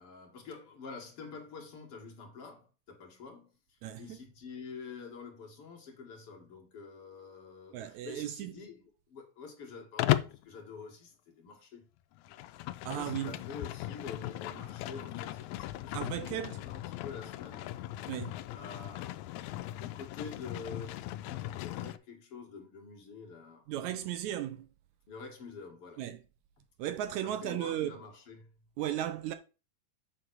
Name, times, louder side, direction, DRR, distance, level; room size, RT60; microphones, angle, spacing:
voice 1, 0.0-11.9 12.8-17.7 18.5-19.3 19.7-24.4 25.1-26.0 27.2-28.5, left 5 dB, 50° left, 2.5 m, -47 dB
voice 2, 7.7-8.5 12.9-13.3 15.9-16.6 18.1-18.4 23.7-24.7 26.0-26.2 26.8-28.0 28.8-29.3, right 12 dB, 80° right, 1.8 m, -35 dB
Livestock farm animals working animals, 10.0-10.4 12.2-22.0, left 15 dB, 85° left, 1.7 m, -37 dB
8.0 x 4.0 x 6.2 m
omnidirectional pair, 3.8 m